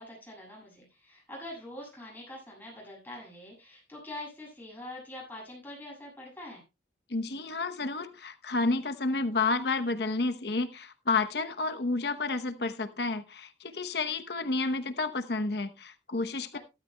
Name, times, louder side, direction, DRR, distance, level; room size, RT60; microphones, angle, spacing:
voice 1, 0.0-6.6 16.5-16.6, left 1 dB, 10° left, -4 dB, 7.5 m, -44 dB
voice 2, 7.1-16.6, left 3 dB, 65° left, 9 dB, 0.9 m, -30 dB
15.5 x 13.0 x 2.3 m, 0.26 s
head